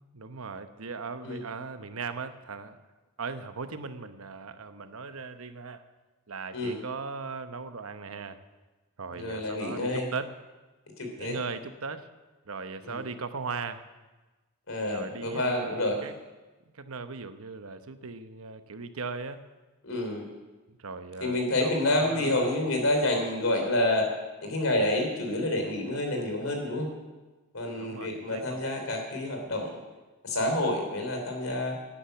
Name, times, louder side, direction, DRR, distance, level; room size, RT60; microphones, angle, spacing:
voice 1, 0.0-2.8 3.2-5.8 6.3-8.4 9.0-10.3 11.2-12.1 12.5-13.8 14.9-16.1 16.7-19.4 20.7-22.6 27.7-28.7, right 4 dB, 75° right, 10 dB, 0.9 m, -38 dB
voice 2, 9.1-10.0 11.0-11.3 12.8-13.0 14.7-16.0 19.8-20.3 21.2-24.1 24.4-26.9 27.5-29.7 30.2-31.8, left 1 dB, 70° left, 3 dB, 3.5 m, -28 dB
11.5 x 10.0 x 7.9 m, 1.2 s
head